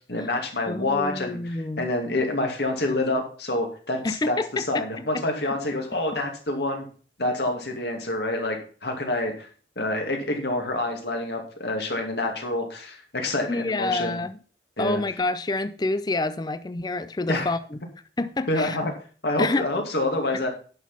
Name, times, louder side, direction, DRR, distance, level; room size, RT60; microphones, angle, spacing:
voice 1, 0.1-6.9 7.2-9.5 9.8-14.2 14.8-15.0 17.3-17.5 18.5-18.9 19.2-20.5, left 2 dB, 60° left, 2.5 m, -27 dB
voice 2, 0.7-1.9 4.0-4.8 5.1-5.2 5.5-5.6 13.5-14.4 14.8-17.6 18.2-18.8 19.4-19.7, left 2 dB, 20° left, 0.4 m, -27 dB
10.5 x 6.2 x 5.7 m
head